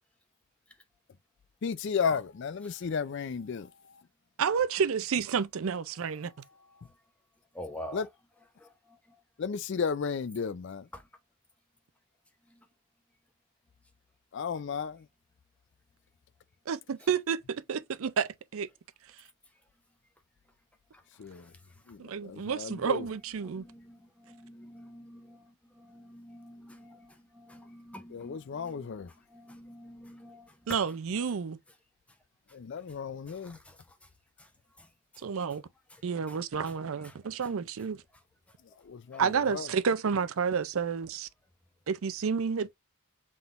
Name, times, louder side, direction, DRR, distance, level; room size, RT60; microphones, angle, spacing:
voice 1, 1.6-3.7 7.9-8.1 9.4-10.9 14.3-15.1 21.2-21.5 21.9-23.0 28.1-29.1 32.5-33.6 38.8-39.3 39.5-39.7, left 6 dB, 50° left, 0.4 m, -34 dB
voice 2, 4.4-6.3 16.7-18.7 22.0-23.6 30.7-31.6 35.2-35.6 36.0-38.0 39.2-41.3 41.9-42.7, right 6 dB, 65° right, 0.5 m, -30 dB
voice 3, 7.5-8.0 8.6-9.0 10.9-11.0 12.5-12.6 21.3-21.5 23.4-30.8 33.3-33.8 34.4-34.5 34.8-34.9 35.1-35.2 35.9-36.0 36.3-36.4 37.0-37.1 39.1-39.2, left 1 dB, 5° left, 0.7 m, -48 dB
5.8 x 3.7 x 2.5 m
head